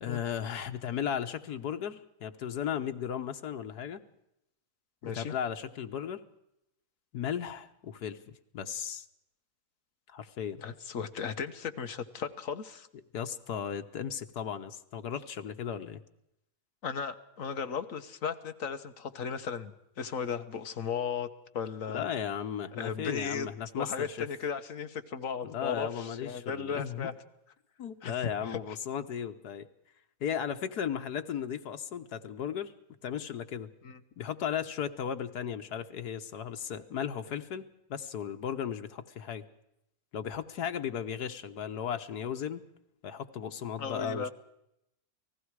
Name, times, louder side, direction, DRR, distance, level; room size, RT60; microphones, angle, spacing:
voice 1, 0.0-4.0 5.0-6.2 7.1-8.2 8.5-9.1 10.1-10.6 13.1-16.0 21.9-24.3 25.4-27.1 27.8-29.7 30.2-32.7 33.0-33.7 34.2-39.4 40.1-42.6 43.0-44.3, left 8 dB, 85° left, 7 dB, 1.7 m, -36 dB
voice 2, 5.0-5.4 10.6-12.9 16.8-21.3 21.5-22.0 22.7-23.5 23.8-27.1 28.0-28.6 33.8-34.0 43.8-44.3, left 6 dB, 60° left, 8 dB, 1.6 m, -36 dB
29.0 x 19.5 x 4.8 m, 0.83 s
omnidirectional pair, 1.6 m